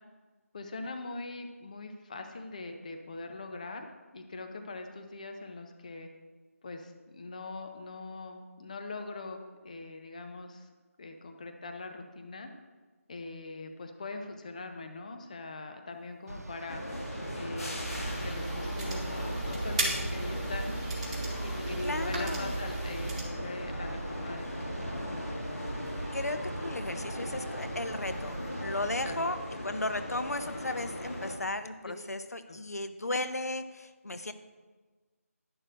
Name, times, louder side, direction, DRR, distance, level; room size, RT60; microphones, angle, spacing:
voice 1, 0.5-3.9 4.1-6.1 6.6-9.4 9.6-10.7 11.0-12.5 13.1-16.8 17.3-20.9 21.4-25.3 29.0-29.3 31.8-31.9 32.5-32.6, left 3 dB, 30° left, 5 dB, 0.6 m, -42 dB
sound 1, 16.3-29.2, right 2 dB, 85° right, 0.9 m, -41 dB
sound 2, 16.7-31.3, left 1 dB, 70° left, 2.1 m, -38 dB
sound 3, 17.8-23.2, right 3 dB, 25° right, 1.9 m, -36 dB
voice 2, 21.8-22.5 26.1-34.3, left 2 dB, 90° left, 10 dB, 0.8 m, -35 dB
11.0 x 11.0 x 2.5 m, 1.3 s
figure-of-eight pair, 165°, 8 cm